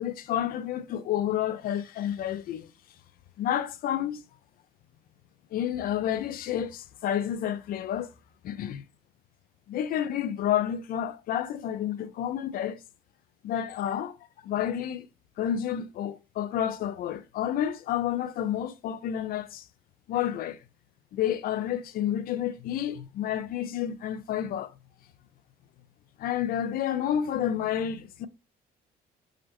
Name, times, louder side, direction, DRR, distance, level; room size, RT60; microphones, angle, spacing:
voice 1, 0.0-2.7 3.4-4.2 5.5-8.1 8.4-8.8 9.7-12.8 13.4-14.1 14.4-15.1 15.4-19.7 20.1-20.6 21.1-24.7 26.2-28.3, left 10 dB, 60° left, 0.4 m, -30 dB
4.9 x 2.0 x 2.9 m
cardioid pair, 110°, 17 cm